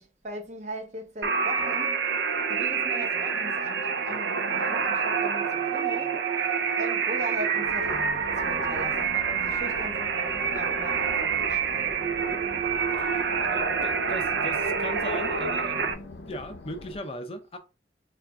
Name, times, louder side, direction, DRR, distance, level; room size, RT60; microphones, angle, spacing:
voice 1, 0.0-2.0 2.5-6.2 6.7-12.0, right 1 dB, 40° right, 0.7 m, -39 dB
sound 1, 1.2-15.9, right 6 dB, 75° right, 0.5 m, -27 dB
sound 2, 7.6-17.0, left 2 dB, 80° left, 0.6 m, -44 dB
voice 2, 13.0-15.9 16.3-17.6, left 1 dB, 30° left, 0.4 m, -38 dB
3.9 x 2.4 x 3.3 m
head